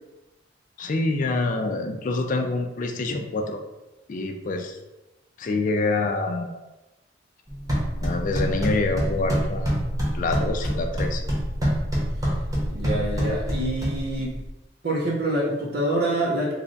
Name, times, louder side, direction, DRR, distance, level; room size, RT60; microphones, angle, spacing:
voice 1, 0.8-3.6 4.1-4.8 5.4-6.6 8.0-9.8 10.1-11.2, left 3 dB, 45° left, 4 dB, 0.4 m, -26 dB
sound 1, 7.5-14.5, equal, 20° right, 1.0 m, -26 dB
voice 2, 12.7-14.4 14.8-16.5, right 1 dB, 55° right, -4 dB, 0.8 m, -26 dB
3.3 x 2.3 x 3.8 m, 1.0 s
head